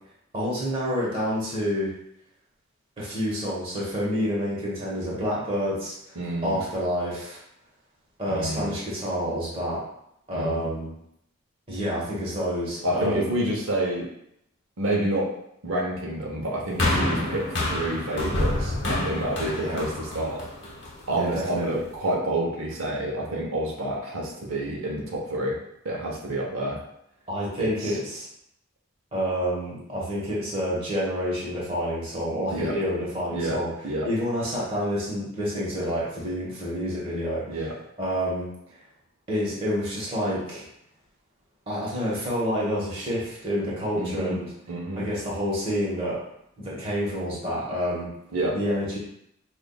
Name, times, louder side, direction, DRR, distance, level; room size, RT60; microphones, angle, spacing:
voice 1, 0.3-1.9 3.0-6.2 6.4-7.4 8.2-9.8 10.3-10.9 11.7-13.3 19.5-19.9 21.1-21.8 27.3-28.3 29.1-33.7 34.0-37.7 38.0-38.5 39.3-40.7 41.7-44.5 45.0-46.2 46.6-48.1 48.5-49.0, equal, 25° right, -6 dB, 1.1 m, -28 dB
voice 2, 6.2-6.6 8.3-8.7 10.3-10.7 12.8-14.1 14.8-15.3 15.6-20.4 21.1-25.6 25.8-26.8 27.6-28.0 32.5-32.8 33.3-34.1 37.5-37.7 44.0-44.4 44.7-45.1 48.3-48.6, right 1 dB, 80° right, -2 dB, 0.8 m, -28 dB
sound 1, 16.8-21.1 21.9-22.0, left 1 dB, 55° left, 1.0 m, -27 dB
5.2 x 2.5 x 2.3 m, 0.75 s
head